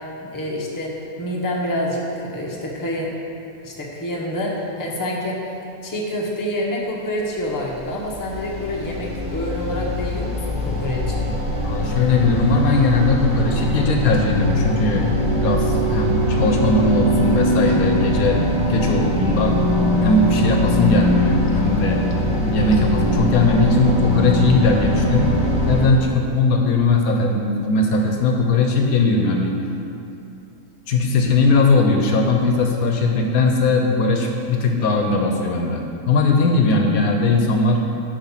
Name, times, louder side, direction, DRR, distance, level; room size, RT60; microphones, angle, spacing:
voice 1, 0.2-0.9 1.2-3.1 3.6-5.4 5.8-11.3, equal, 15° left, -3 dB, 0.9 m, -27 dB
sound 1, 7.4-25.9, equal, 5° right, 1.7 m, -21 dB
voice 2, 11.6-18.4 18.7-19.5 20.0-22.0 22.4-25.4 25.7-29.5 30.9-35.8 36.1-37.8, left 3 dB, 70° left, 2 dB, 1.2 m, -19 dB
9.0 x 4.9 x 5.7 m, 2.7 s
omnidirectional pair, 1.6 m